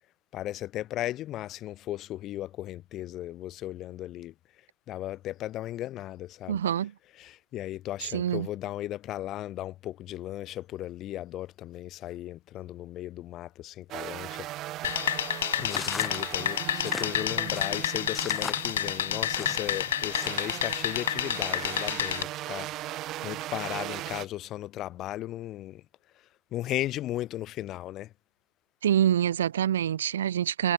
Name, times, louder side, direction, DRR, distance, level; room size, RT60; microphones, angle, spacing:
voice 1, 0.3-4.3 4.9-6.6 7.1-14.5 15.6-25.8 26.5-28.1, left 14 dB, 40° left, 2.2 m, -36 dB
voice 2, 6.5-6.9 8.0-8.5 28.8-30.7, right 10 dB, 80° right, 0.8 m, -26 dB
sound 1, 13.9-24.3, right 15 dB, 40° right, 1.3 m, -38 dB
sound 2, 14.8-22.2, left 11 dB, 80° left, 1.2 m, -30 dB
sound 3, 15.6-19.8 20.2-20.7, left 4 dB, 15° left, 6.0 m, -39 dB
hypercardioid pair, 110°, 0 cm